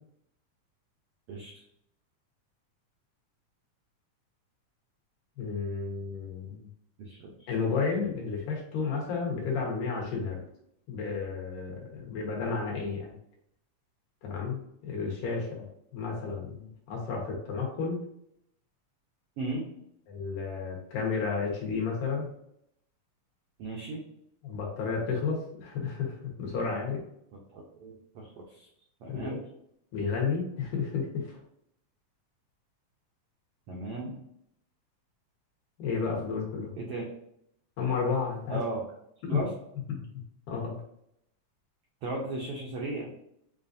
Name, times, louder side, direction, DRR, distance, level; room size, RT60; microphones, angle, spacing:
voice 1, 1.3-1.6 7.0-7.5 19.4-19.7 23.6-24.0 27.5-28.7 29.0-29.4 33.7-34.2 36.8-37.0 38.5-38.8 39.3-39.5 42.0-43.1, right 2 dB, 80° right, -2 dB, 1.3 m, -36 dB
voice 2, 5.4-6.6 7.5-10.4 10.9-13.1 14.2-15.7 15.9-18.0 20.1-22.3 24.4-27.0 29.1-29.4 29.9-31.1 35.8-36.7 37.8-38.6 39.3-39.4 39.9-40.0 40.5-40.8, left 5 dB, 85° left, -2 dB, 2.8 m, -32 dB
6.9 x 2.5 x 2.6 m, 0.75 s
omnidirectional pair, 3.6 m